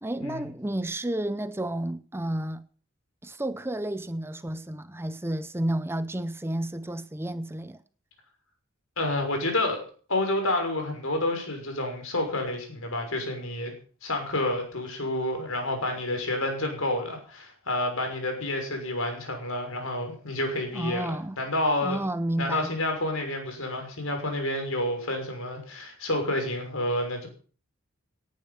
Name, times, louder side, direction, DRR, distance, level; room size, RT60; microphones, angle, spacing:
voice 1, 0.0-2.7 3.2-7.8 20.7-21.4 21.8-22.7, right 1 dB, 10° right, 0.7 m, -31 dB
voice 2, 9.0-9.8 10.1-13.7 14.0-22.0 22.4-27.3, left 1 dB, 70° left, 6.3 m, -29 dB
18.5 x 10.5 x 5.9 m
head